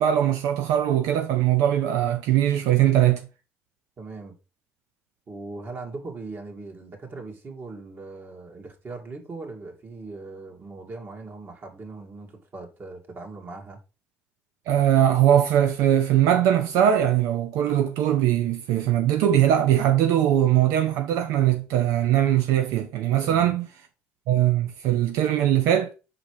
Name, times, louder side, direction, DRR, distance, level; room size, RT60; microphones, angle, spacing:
voice 1, 0.0-3.3 14.7-23.7 24.3-25.9, right 11 dB, 85° right, 0.7 m, -21 dB
voice 2, 4.0-4.3 5.3-13.8 23.2-23.5, right 3 dB, 40° right, 2.2 m, -39 dB
5.8 x 3.9 x 4.8 m
cardioid pair, 90°, 5 cm